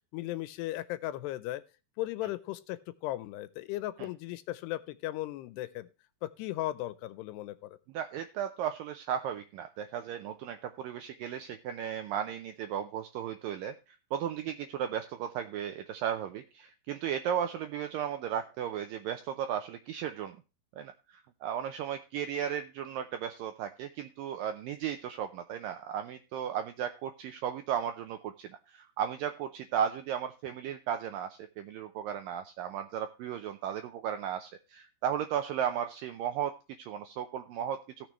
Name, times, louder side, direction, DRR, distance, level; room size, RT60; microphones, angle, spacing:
voice 1, 0.1-1.6 2.0-5.9 6.2-7.8, left 15 dB, 85° left, 15 dB, 2.7 m, -36 dB
voice 2, 7.9-20.4 20.8-38.1, right 9 dB, 85° right, 8 dB, 2.0 m, -35 dB
17.5 x 6.6 x 3.1 m, 0.31 s
omnidirectional pair, 4.8 m